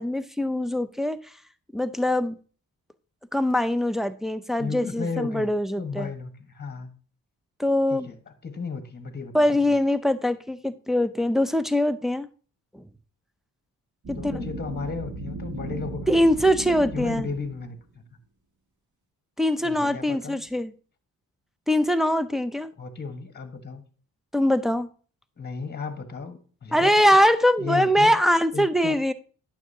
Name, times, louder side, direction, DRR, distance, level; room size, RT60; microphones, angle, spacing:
voice 1, 0.0-1.3 1.7-2.4 3.3-6.1 7.6-8.1 9.3-12.3 12.7-12.8 14.1-14.5 16.1-17.3 19.4-20.7 21.7-22.7 24.3-24.9 26.7-29.1, equal, ahead, 9 dB, 0.5 m, -22 dB
voice 2, 4.6-5.5 5.8-6.9 7.9-8.2 8.4-9.3 9.7-9.8 14.1-16.1 16.9-18.0 19.6-20.4 22.8-23.8 25.4-26.9 27.6-28.1 28.5-29.0, left 4 dB, 25° left, 8 dB, 1.3 m, -34 dB
sound 1, 14.0-17.8, right 2 dB, 55° right, 1.8 m, -36 dB
9.2 x 6.5 x 2.7 m, 0.40 s
cardioid pair, 65°, 36 cm